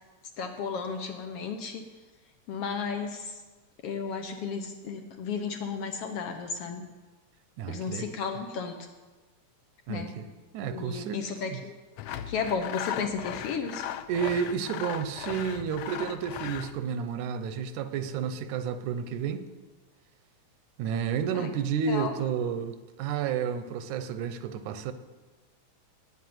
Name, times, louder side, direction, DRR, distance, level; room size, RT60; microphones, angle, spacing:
voice 1, 0.4-1.8 2.5-3.4 3.8-6.8 7.7-8.9 9.9-10.1 10.7-11.7 12.3-13.8 21.3-21.5 21.9-22.1, left 5 dB, 65° left, 5 dB, 1.6 m, -33 dB
voice 2, 7.6-8.1 9.9-10.2 10.5-11.2 11.5-11.6 14.1-19.5 20.8-24.9, right 7 dB, 85° right, 10 dB, 2.2 m, -31 dB
Sawing, 12.0-16.8, left 11 dB, 90° left, 1.3 m, -37 dB
9.4 x 9.2 x 9.3 m, 1.3 s
omnidirectional pair, 3.3 m